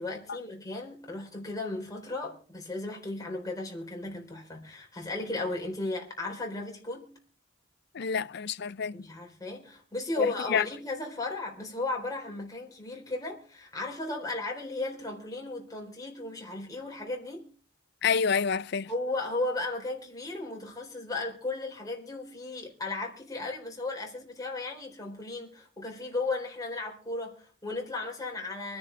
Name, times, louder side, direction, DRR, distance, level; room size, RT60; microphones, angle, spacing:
voice 1, 0.0-7.2 8.9-17.5 18.9-28.8, left 2 dB, 20° left, 3.9 m, -35 dB
voice 2, 7.9-9.1 10.2-10.6 18.0-18.9, left 6 dB, 60° left, 0.5 m, -28 dB
24.5 x 10.0 x 3.4 m
head